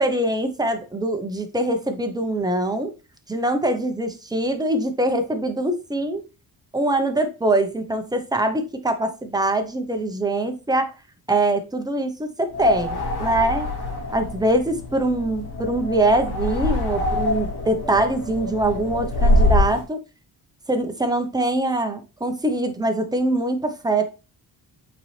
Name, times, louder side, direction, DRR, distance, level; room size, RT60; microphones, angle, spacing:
voice 1, 0.0-2.9 3.3-6.2 6.7-10.9 11.3-13.7 14.1-20.0 20.7-24.1, right 1 dB, 10° right, 0.8 m, -23 dB
sound 1, 12.5-19.8, left 1 dB, 90° left, 2.1 m, -24 dB
8.7 x 4.2 x 3.2 m
wide cardioid pair, 170°, 38 cm